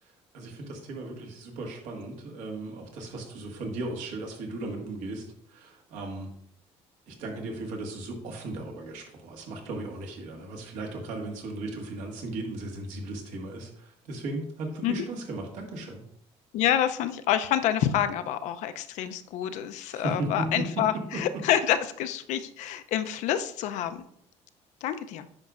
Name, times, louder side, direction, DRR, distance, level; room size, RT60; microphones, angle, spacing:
voice 1, 0.0-6.3 7.1-16.0 19.9-21.4, right 2 dB, 85° right, 1 dB, 1.6 m, -36 dB
voice 2, 16.5-24.0 24.8-25.3, left 10 dB, 75° left, 10 dB, 0.5 m, -27 dB
9.7 x 5.3 x 2.4 m, 0.70 s
cardioid pair, 155°, 12 cm